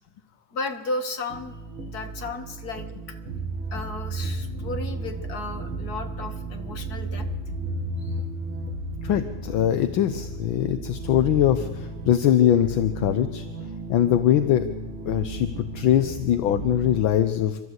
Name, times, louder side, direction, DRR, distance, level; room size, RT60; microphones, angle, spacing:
voice 1, 0.5-1.6 1.9-3.2 3.7-7.3 8.0-8.2, left 3 dB, 50° left, 4 dB, 2.4 m, -34 dB
sound 1, 1.3-17.0, right 2 dB, 85° right, 2.8 m, -34 dB
voice 2, 9.0-13.4 13.9-14.7 15.0-15.5 15.7-17.6, left 11 dB, 75° left, 9 dB, 1.6 m, -22 dB
28.5 x 13.0 x 8.0 m, 1.2 s
omnidirectional pair, 2.3 m